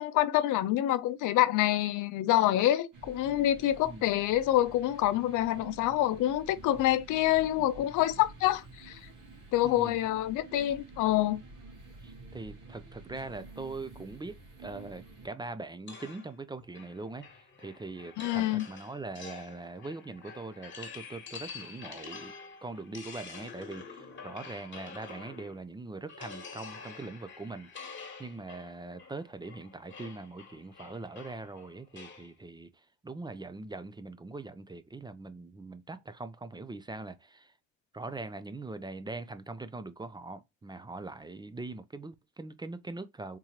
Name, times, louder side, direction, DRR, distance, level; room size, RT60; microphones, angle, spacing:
voice 1, 0.0-9.0 9.5-11.4 18.2-18.6, left 13 dB, 85° left, 0.5 m, -27 dB
sound 1, 2.9-15.3, right 3 dB, 80° right, 1.7 m, -50 dB
voice 2, 9.6-10.0 12.0-22.3 22.6-37.5 37.9-43.4, right 3 dB, 15° right, 0.4 m, -42 dB
sound 2, 15.9-25.7 26.1-32.3, left 5 dB, 40° left, 1.3 m, -47 dB
3.7 x 3.0 x 2.8 m
cardioid pair, 90°, 30 cm